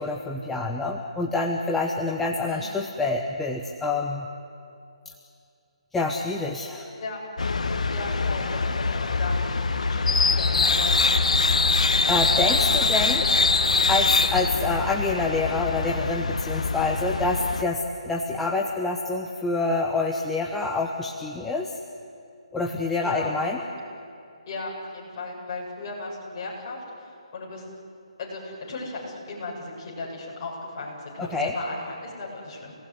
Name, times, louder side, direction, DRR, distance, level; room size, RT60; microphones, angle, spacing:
voice 1, 0.0-4.3 5.9-6.9 11.5-11.6 12.1-13.2 13.9-21.7 22.5-23.6 31.2-31.5, left 3 dB, 5° left, 0 dB, 0.9 m, -27 dB
voice 2, 2.4-2.8 7.0-7.2 7.9-11.1 12.5-12.9 23.0-23.3 24.5-27.6 28.2-32.7, left 3 dB, 30° left, -3 dB, 7.5 m, -36 dB
sound 1, 7.4-17.6, left 3 dB, 85° left, 1.6 m, -23 dB
29.0 x 19.0 x 9.8 m, 2.5 s
hypercardioid pair, 170°, 4 cm